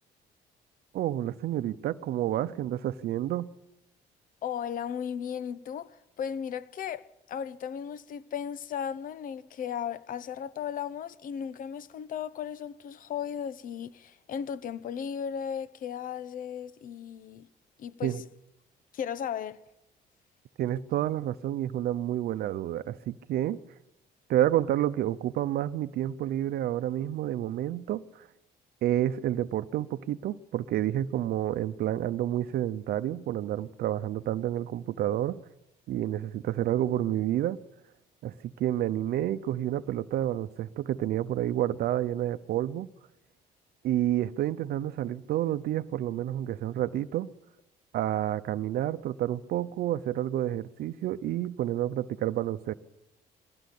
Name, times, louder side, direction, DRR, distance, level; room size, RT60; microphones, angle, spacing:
voice 1, 0.9-3.5 18.0-18.2 20.6-23.6 24.3-28.3 28.8-35.4 35.9-37.6 38.2-42.9 43.8-47.3 47.9-52.7, right 12 dB, 70° right, 0.8 m, -29 dB
voice 2, 4.4-17.5 17.8-18.2 18.9-19.6, left 8 dB, 55° left, 0.9 m, -36 dB
21.0 x 16.0 x 8.4 m
cardioid pair, 110°, 17 cm